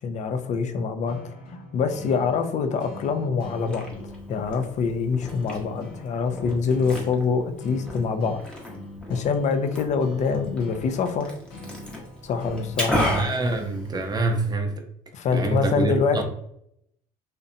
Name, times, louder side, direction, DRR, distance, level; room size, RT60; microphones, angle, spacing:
voice 1, 0.0-1.3 1.7-3.9 4.3-8.4 9.1-11.3 12.2-13.0 15.1-16.2, left 5 dB, 45° left, 8 dB, 0.4 m, -25 dB
sound 1, 1.1-14.6, left 1 dB, 85° left, 0.9 m, -43 dB
Liquid, 3.4-14.4, equal, 5° left, 0.8 m, -34 dB
voice 2, 12.9-14.8 15.3-16.2, right 2 dB, 25° right, 4 dB, 0.5 m, -26 dB
2.6 x 2.1 x 2.5 m, 0.75 s
supercardioid pair, 95°, 17 cm